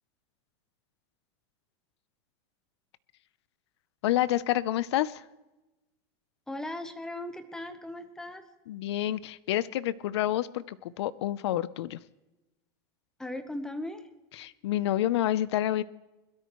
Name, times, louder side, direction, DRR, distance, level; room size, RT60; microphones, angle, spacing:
voice 1, 4.0-5.2 8.7-12.0 14.4-15.8, left 13 dB, 75° left, 18 dB, 0.7 m, -28 dB
voice 2, 6.5-8.4 13.2-14.1, left 1 dB, 5° left, 8 dB, 1.0 m, -38 dB
21.5 x 13.0 x 3.1 m, 1.0 s
supercardioid pair, 155°, 14 cm